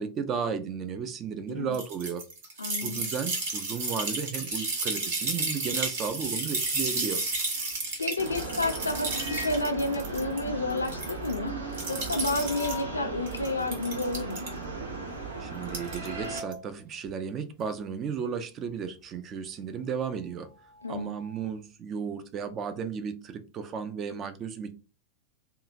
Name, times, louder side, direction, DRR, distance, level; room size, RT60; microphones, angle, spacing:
voice 1, 0.0-2.2 2.8-7.2 15.4-20.5 20.9-24.7, right 6 dB, 30° right, 0.4 m, -34 dB
sound 1, 1.7-10.4 10.7-11.4 11.7-12.8 13.3-14.5 15.6-16.1 16.4-16.5, right 3 dB, 55° right, 1.0 m, -32 dB
voice 2, 2.6-3.1 8.0-11.5 11.9-14.5 20.8-21.1, left 2 dB, 80° left, 0.4 m, -31 dB
sound 2, 5.0-5.4 5.8-7.9 8.8-9.8 10.2-10.3 10.5-10.6 11.0-13.1 13.6-13.7 14.5-14.8 15.1-18.4 18.7-21.6, left 2 dB, 20° left, 0.6 m, -46 dB
sound 3, 8.2-16.4, right 3 dB, 75° right, 0.7 m, -37 dB
2.8 x 2.4 x 2.4 m
figure-of-eight pair, 90°, 0 cm